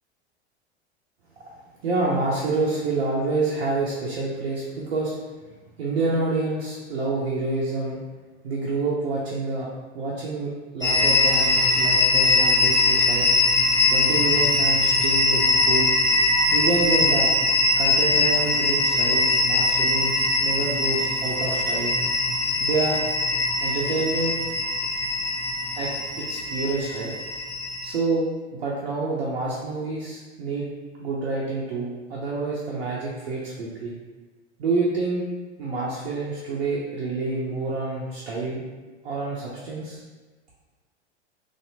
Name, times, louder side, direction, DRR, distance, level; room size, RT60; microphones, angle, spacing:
voice 1, 1.8-5.2 5.8-8.0 8.4-9.7 9.9-13.3 13.9-15.9 16.5-17.3 17.8-21.9 22.6-23.0 23.6-24.3 25.7-25.9 26.2-27.1 27.8-28.3 28.5-30.7 31.0-33.9 34.6-35.3 35.6-38.6 39.0-40.0, right 3 dB, 60° right, -5 dB, 0.7 m, -27 dB
sound 1, 10.8-27.9, left 2 dB, 10° left, 0.7 m, -22 dB
3.1 x 2.7 x 2.7 m, 1.3 s
figure-of-eight pair, 90°, 33 cm